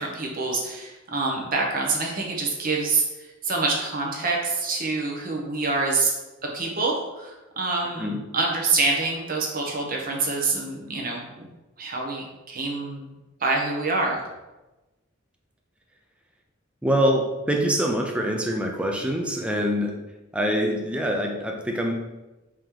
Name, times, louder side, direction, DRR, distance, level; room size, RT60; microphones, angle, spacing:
voice 1, 0.0-3.0 3.4-6.1 6.4-8.1 8.3-11.2 11.8-13.1 13.4-14.2, right 3 dB, 45° right, -1 dB, 0.9 m, -26 dB
voice 2, 16.8-20.0 20.3-22.0, equal, 5° right, 1 dB, 0.5 m, -24 dB
4.8 x 3.0 x 3.8 m, 1.1 s
head